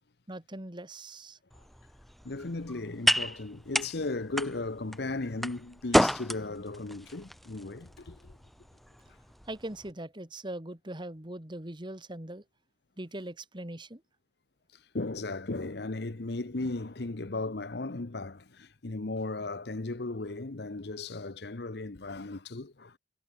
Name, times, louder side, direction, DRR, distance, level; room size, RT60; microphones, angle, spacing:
voice 1, 0.3-1.4 9.5-12.4 13.0-14.0, right 1 dB, 25° right, 2.0 m, -41 dB
sound 1, 1.5-9.9, equal, ahead, 0.4 m, -32 dB
voice 2, 2.2-8.4 14.9-22.9, left 2 dB, 65° left, 1.0 m, -36 dB
head